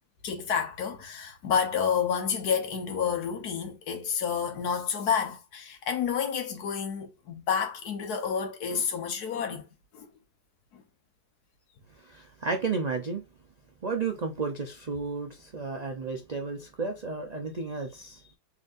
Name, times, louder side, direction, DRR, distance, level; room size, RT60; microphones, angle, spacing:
voice 1, 0.2-9.7 9.9-10.1 10.7-10.8, left 7 dB, 70° left, 1.5 m, -29 dB
voice 2, 11.9-13.2 13.8-18.3, right 4 dB, 70° right, 0.3 m, -33 dB
4.0 x 3.4 x 2.5 m
omnidirectional pair, 1.7 m